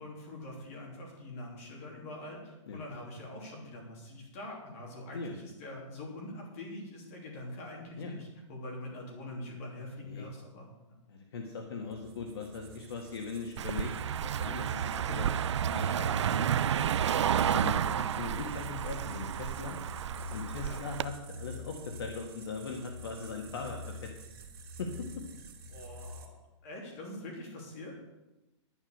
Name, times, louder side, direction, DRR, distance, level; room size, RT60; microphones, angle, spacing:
voice 1, 0.0-11.0 17.3-17.6 20.6-20.9 25.7-26.3 26.6-28.0, left 1 dB, 25° left, -1 dB, 3.2 m, -44 dB
voice 2, 11.1-13.9 14.2-15.4 15.7-16.4 17.5-19.8 20.3-24.1 24.4-24.5 24.8-25.2, left 4 dB, 55° left, 2 dB, 1.7 m, -40 dB
sound 1, 11.9-26.3, left 1 dB, 45° right, 2.8 m, -47 dB
Car passing by, 13.6-21.1, right 9 dB, 65° right, 0.4 m, -31 dB
11.0 x 9.7 x 6.6 m, 1.0 s
hypercardioid pair, 175°, 16 cm